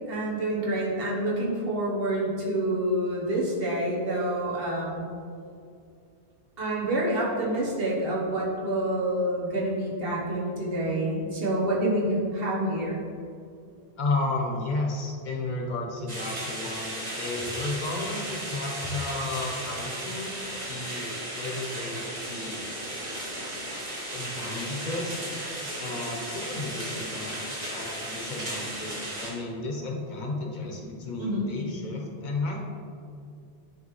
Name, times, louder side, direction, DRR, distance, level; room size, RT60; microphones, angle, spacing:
voice 1, 0.1-5.0 6.6-13.0 31.2-31.5, right 1 dB, 65° right, -5 dB, 1.4 m, -27 dB
voice 2, 14.0-20.3 20.7-22.7 24.1-25.2 25.8-27.4 27.7-32.6, left 2 dB, 50° left, 0 dB, 1.0 m, -33 dB
sound 1, 16.1-29.3, right 1 dB, 40° right, 1.5 m, -35 dB
9.1 x 3.3 x 3.2 m, 2.4 s
omnidirectional pair, 1.1 m